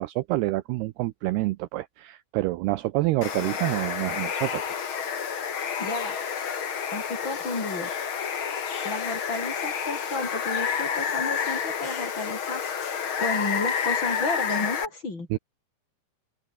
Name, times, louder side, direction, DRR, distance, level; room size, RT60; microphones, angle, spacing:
voice 1, 0.0-4.9 15.3-15.4, right 18 dB, 85° right, 2.3 m, -27 dB
Water, 3.2-14.9, left 7 dB, 50° left, 1.5 m, -29 dB
voice 2, 5.8-6.2 6.9-7.9 8.8-12.6 13.2-15.3, left 3 dB, 25° left, 4.8 m, -32 dB
omnidirectional pair, 5.4 m